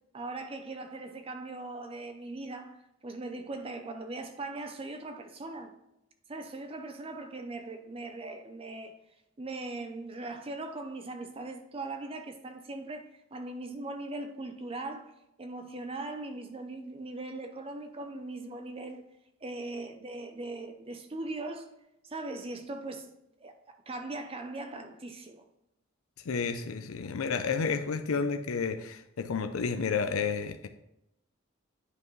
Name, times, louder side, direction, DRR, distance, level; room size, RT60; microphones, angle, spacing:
voice 1, 0.1-2.8 3.0-5.7 6.3-8.9 9.4-15.1 15.4-19.0 19.4-21.7 22.0-23.1 23.4-25.4, right 2 dB, 25° right, 0.5 m, -40 dB
voice 2, 26.3-30.7, left 5 dB, 90° left, 0.5 m, -31 dB
9.5 x 5.2 x 3.1 m
head